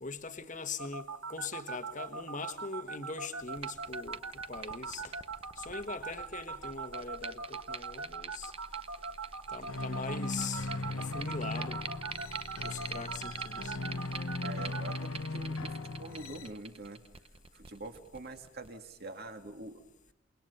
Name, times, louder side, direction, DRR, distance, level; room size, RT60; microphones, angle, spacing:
voice 1, 0.0-4.2 4.5-5.2 5.6-8.5 9.5-10.7 10.9-11.8 12.6-13.8, left 4 dB, 35° left, 1.5 m, -41 dB
sound 1, 0.8-15.0, right 4 dB, 85° right, 1.8 m, -40 dB
sound 2, 3.4-18.7, right 5 dB, 25° right, 0.8 m, -47 dB
sound 3, 9.7-16.5, left 2 dB, 80° left, 1.1 m, -38 dB
voice 2, 14.4-17.0 17.5-19.8, right 2 dB, 50° right, 2.4 m, -45 dB
28.5 x 22.0 x 5.6 m
head